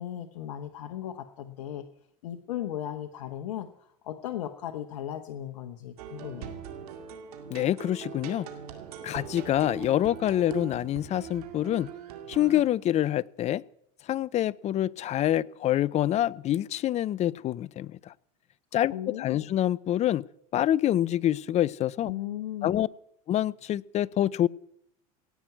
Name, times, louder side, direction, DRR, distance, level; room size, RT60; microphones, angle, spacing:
voice 1, 0.0-1.9 2.2-6.6 18.9-19.5 22.0-22.8, left 11 dB, 85° left, 6 dB, 1.0 m, -36 dB
sound 1, 6.0-12.7, right 8 dB, 85° right, 2.2 m, -41 dB
voice 2, 7.5-8.5 9.0-11.9 12.3-13.6 14.1-18.1 18.7-18.9 19.2-20.3 20.5-22.1 22.6-22.9 23.3-24.5, left 12 dB, 35° left, 23 dB, 0.4 m, -26 dB
17.5 x 6.0 x 9.2 m, 0.73 s
supercardioid pair, 100°, 19 cm